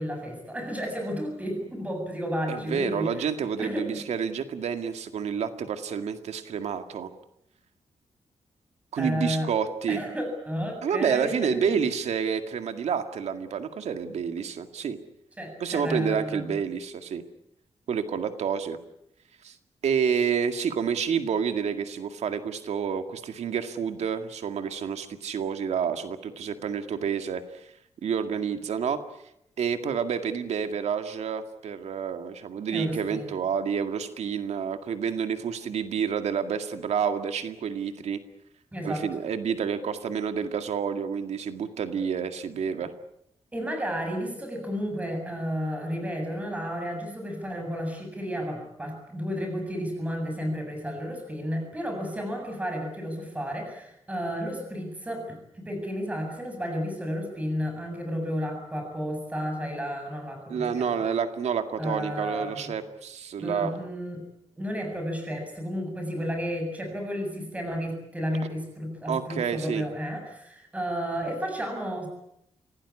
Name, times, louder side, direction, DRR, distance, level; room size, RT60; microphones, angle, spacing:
voice 1, 0.0-3.3 3.6-4.0 9.0-9.5 9.9-11.8 15.4-16.6 32.7-33.3 38.7-39.1 43.5-61.0 61.8-62.8 63.4-64.2 64.6-72.1, equal, 10° right, 4 dB, 7.5 m, -32 dB
voice 2, 2.5-7.1 8.9-10.0 10.8-15.0 15.6-17.2 17.9-18.8 19.4-19.6 19.8-27.7 28.0-29.0 29.6-38.2 38.8-42.9 60.5-63.7 69.1-69.9, right 7 dB, 80° right, 8 dB, 2.0 m, -29 dB
26.0 x 17.5 x 9.8 m, 0.78 s
wide cardioid pair, 140°, 11 cm